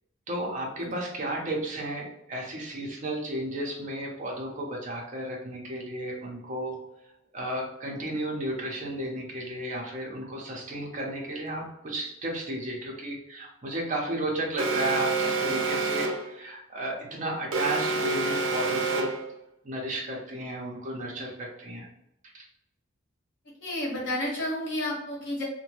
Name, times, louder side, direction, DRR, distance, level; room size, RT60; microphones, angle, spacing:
voice 1, 0.3-6.8 7.3-19.1 19.6-21.9 22.3-22.5, right 1 dB, 35° right, -2 dB, 0.7 m, -33 dB
Alarm, 14.6-16.3 17.5-19.3, right 3 dB, 75° right, 0.5 m, -28 dB
voice 2, 23.6-25.4, left 1 dB, 60° left, -3 dB, 1.1 m, -31 dB
2.7 x 2.2 x 3.0 m, 0.81 s
head